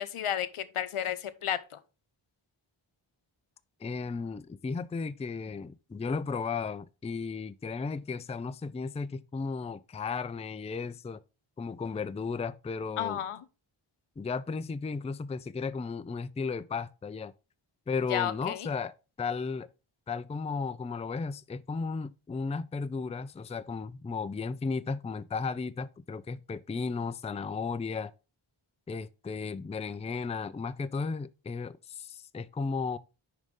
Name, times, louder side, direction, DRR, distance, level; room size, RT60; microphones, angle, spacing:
voice 1, 0.0-1.8 13.0-13.4 18.1-18.7, left 10 dB, 85° left, 0.7 m, -32 dB
voice 2, 3.8-11.2 11.6-13.2 14.2-17.3 17.9-18.9 19.2-19.7 20.1-28.1 28.9-33.0, left 4 dB, 15° left, 0.3 m, -34 dB
10.5 x 3.9 x 3.7 m
cardioid pair, 50°, 50 cm